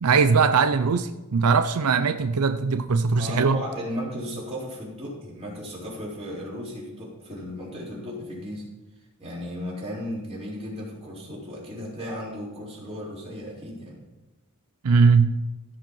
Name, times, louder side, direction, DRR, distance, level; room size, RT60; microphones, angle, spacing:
voice 1, 0.0-3.6 14.8-15.4, right 5 dB, 85° right, 10 dB, 0.5 m, -20 dB
voice 2, 3.2-8.7 9.2-14.0, equal, 25° right, -5 dB, 3.9 m, -35 dB
16.0 x 5.4 x 5.5 m, 1.1 s
head